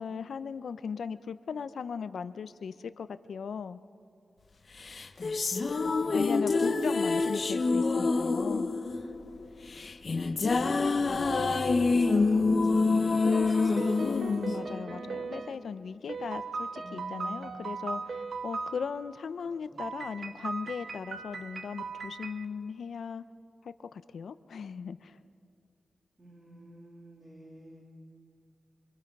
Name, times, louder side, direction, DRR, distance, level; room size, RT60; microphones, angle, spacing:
voice 1, 0.0-3.8 6.1-8.7 14.0-23.2 23.6-25.2, left 6 dB, 85° left, 12 dB, 0.7 m, -38 dB
sound 1, 4.8-15.3, left 3 dB, 50° left, 1.0 m, -27 dB
voice 2, 5.8-8.2 11.1-14.1 16.8-17.6 19.7-19.8 26.2-27.9, right 1 dB, 25° right, -3 dB, 2.7 m, -46 dB
sound 2, 13.2-15.5 16.1-18.8 19.8-22.4, right 4 dB, 65° right, 1.1 m, -38 dB
26.5 x 23.5 x 5.4 m, 2.3 s
wide cardioid pair, 105°, 0 cm